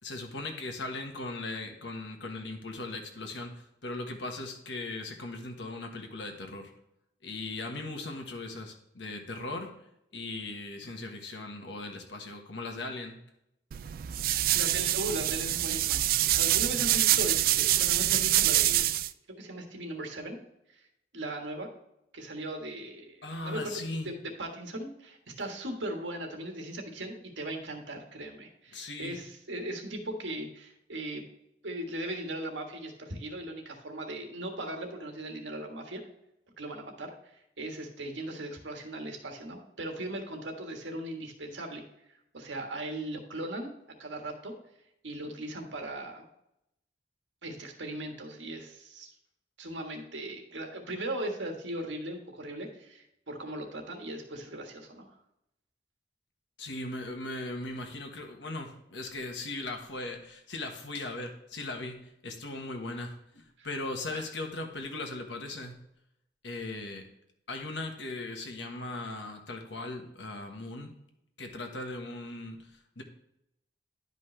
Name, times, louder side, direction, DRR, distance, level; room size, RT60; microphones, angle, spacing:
voice 1, 0.0-6.7 7.2-9.8 10.1-13.2 23.2-24.1 28.7-29.3 56.6-65.8 66.4-67.1 67.5-71.0 71.4-73.0, left 2 dB, 70° left, 4 dB, 1.4 m, -38 dB
sound 1, 13.7-19.1, right 14 dB, 50° right, 0.3 m, -26 dB
voice 2, 14.5-18.9 19.3-20.4 20.7-20.9 21.1-21.7 22.1-23.8 24.0-31.2 31.6-36.0 36.6-37.1 37.6-41.8 42.3-43.7 44.0-44.5 45.0-46.3 47.4-49.1 49.6-55.1 63.6-63.7 64.1-64.2, right 1 dB, 75° right, 3 dB, 1.6 m, -38 dB
11.0 x 5.3 x 3.3 m, 0.82 s
head